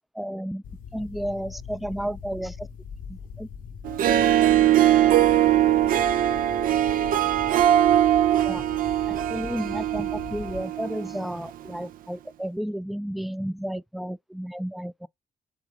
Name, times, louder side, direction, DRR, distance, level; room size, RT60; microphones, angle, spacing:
voice 1, 0.2-0.6 0.9-2.7 3.1-3.5 8.4-8.6 9.1-15.1, equal, ahead, 0.3 m, -32 dB
sound 1, 0.6-10.6, left 6 dB, 85° left, 0.8 m, -41 dB
Harp, 3.8-11.3, right 12 dB, 80° right, 0.4 m, -21 dB
4.5 x 3.0 x 3.7 m
supercardioid pair, 55°, 14 cm